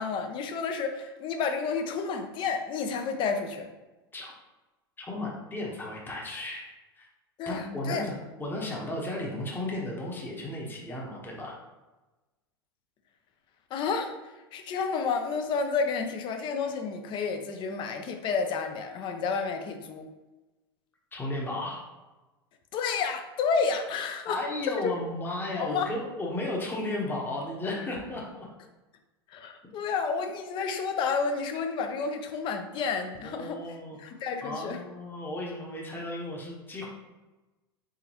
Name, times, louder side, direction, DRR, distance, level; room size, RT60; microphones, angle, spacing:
voice 1, 0.0-3.7 7.4-8.0 13.7-14.1 14.5-20.1 22.7-24.9 25.6-25.9 29.3-34.8, left 5 dB, 35° left, 6 dB, 0.6 m, -30 dB
voice 2, 5.0-6.7 6.9-7.1 7.5-8.1 8.4-11.5 21.1-21.8 24.3-28.5 33.2-34.1 34.4-36.9, left 1 dB, 15° left, -2 dB, 1.0 m, -34 dB
4.1 x 3.7 x 2.9 m, 1.1 s
figure-of-eight pair, 85°, 13 cm